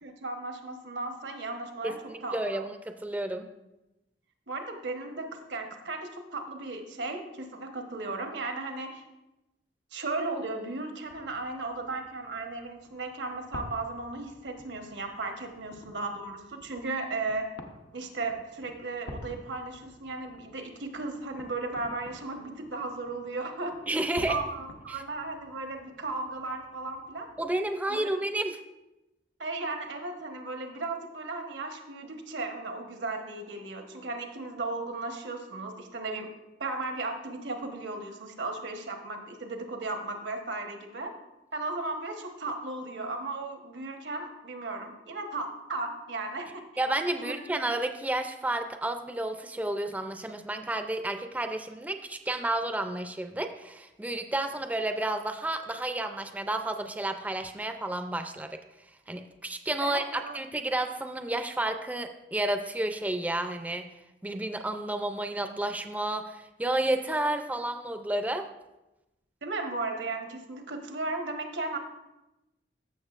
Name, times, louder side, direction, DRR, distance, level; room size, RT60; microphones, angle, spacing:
voice 1, 0.0-1.9 2.2-2.6 4.5-9.0 9.9-17.5 17.9-23.7 24.3-27.3 27.9-28.1 29.4-36.3 36.6-41.1 41.5-46.6 47.1-47.4 59.8-60.4 69.4-71.8, right 3 dB, 80° right, 4 dB, 1.1 m, -35 dB
voice 2, 1.8-3.5 23.9-24.4 24.9-25.0 27.4-28.6 46.8-58.6 59.1-63.9 64.2-68.5, right 1 dB, 10° right, 6 dB, 0.4 m, -31 dB
sound 1, 11.0-27.7, left 1 dB, 85° left, 0.9 m, -50 dB
14.5 x 6.6 x 2.5 m, 0.96 s
head